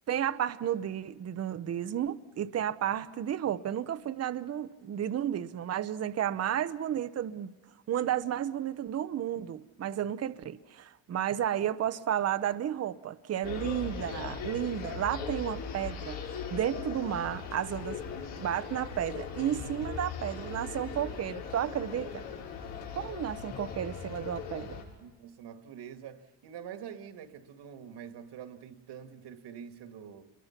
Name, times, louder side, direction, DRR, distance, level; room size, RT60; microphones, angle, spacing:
voice 1, 0.1-7.5 7.9-16.2 16.5-18.0 18.4-22.3 23.0-24.8, right 10 dB, 30° right, 0.9 m, -32 dB
sound 1, 13.4-24.8, left 6 dB, 80° left, 7.0 m, -39 dB
voice 2, 25.0-30.3, right 8 dB, 60° right, 2.0 m, -46 dB
28.5 x 22.5 x 5.9 m
cardioid pair, 130°, 47 cm